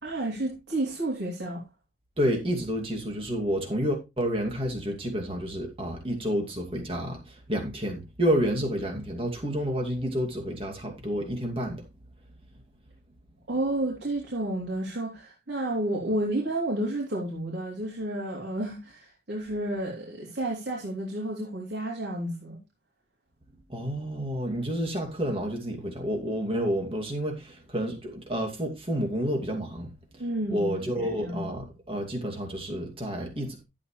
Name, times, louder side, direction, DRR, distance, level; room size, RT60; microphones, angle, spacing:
voice 1, 0.0-1.6 13.5-22.6 30.2-31.5, right 1 dB, 80° right, 3.3 m, -31 dB
voice 2, 2.2-11.8 23.7-29.9 30.5-33.6, equal, 30° right, 2.5 m, -30 dB
12.0 x 8.6 x 3.2 m
head